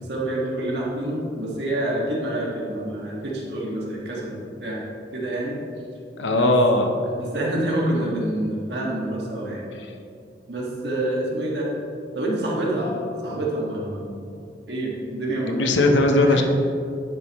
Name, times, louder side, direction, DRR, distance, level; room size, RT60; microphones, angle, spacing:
voice 1, 0.1-4.8 5.1-5.6 6.3-6.6 7.2-9.6 10.5-11.7 12.1-13.0 13.2-14.2 14.7-16.4, right 1 dB, 70° right, -4 dB, 1.8 m, -27 dB
voice 2, 6.2-6.9 15.5-16.4, left 2 dB, 85° left, 4 dB, 0.8 m, -18 dB
10.5 x 7.0 x 3.1 m, 2.5 s
head